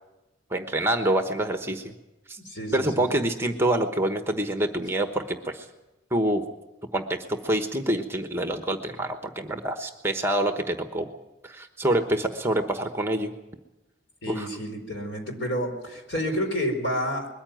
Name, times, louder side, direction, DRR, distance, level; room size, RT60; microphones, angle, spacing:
voice 1, 0.5-1.9 2.3-2.4 2.7-5.7 6.1-6.4 6.9-11.1 11.4-13.3 14.3-14.5, right 1 dB, 10° right, 6 dB, 1.1 m, -26 dB
voice 2, 2.4-3.0 14.2-17.3, equal, 60° left, 3 dB, 4.5 m, -29 dB
21.5 x 14.5 x 9.1 m, 1.0 s
head